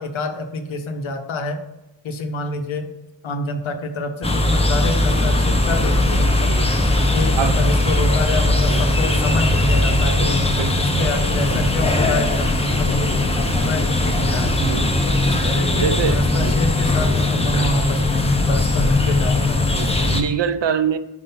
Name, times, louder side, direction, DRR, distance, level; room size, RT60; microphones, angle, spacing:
voice 1, 0.0-1.6 2.0-2.9 3.2-6.6 7.1-10.4 10.8-14.6 15.0-19.8, left 2 dB, 85° left, 6 dB, 0.9 m, -27 dB
sound 1, 4.2-20.2, left 2 dB, 15° left, 0.7 m, -19 dB
voice 2, 6.5-6.8 7.4-7.6 7.9-8.1 8.7-8.8 10.2-10.3 10.6-10.9 14.6-14.9 15.8-16.6 17.5-17.7 19.7-21.0, right 7 dB, 65° right, 12 dB, 0.6 m, -24 dB
5.6 x 5.0 x 3.8 m, 1.0 s
wide cardioid pair, 120°, 46 cm